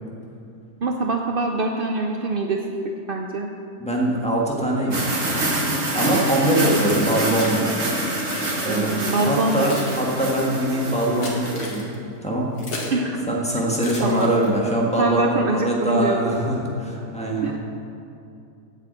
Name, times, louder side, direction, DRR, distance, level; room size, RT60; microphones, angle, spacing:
voice 1, 0.8-2.7 3.1-3.5 8.6-9.7 12.9-13.3 14.0-14.4 15.0-16.4 17.4-17.6, right 3 dB, 70° right, 3 dB, 0.5 m, -24 dB
voice 2, 3.8-7.9 8.6-11.9 12.2-12.5 13.3-17.6, right 1 dB, 5° left, -4 dB, 1.5 m, -23 dB
sound 1, 4.9-11.7, right 1 dB, 45° right, 1.7 m, -26 dB
Keys jangling, 6.7-7.6 8.1-8.6 9.3-13.0 13.8-14.7, left 2 dB, 75° left, 2.2 m, -36 dB
8.4 x 8.1 x 7.5 m, 2.6 s
omnidirectional pair, 1.7 m